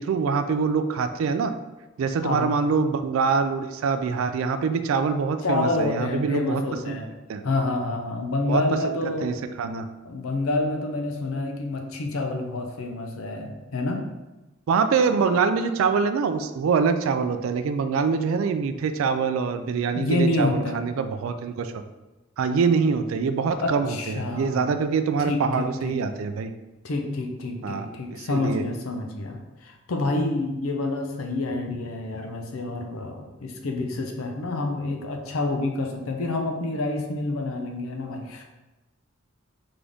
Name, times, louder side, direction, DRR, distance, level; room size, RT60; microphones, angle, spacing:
voice 1, 0.0-1.5 2.0-7.0 7.3-7.4 8.5-8.6 9.2-9.8 14.7-21.8 22.4-26.5 27.6-28.6, right 5 dB, 75° right, 9 dB, 0.3 m, -24 dB
voice 2, 5.4-7.1 7.4-9.3 10.0-14.0 19.9-20.8 23.6-24.7 25.2-26.0 26.8-38.4, left 2 dB, 90° left, 3 dB, 0.6 m, -28 dB
3.9 x 3.5 x 3.5 m, 1.1 s
head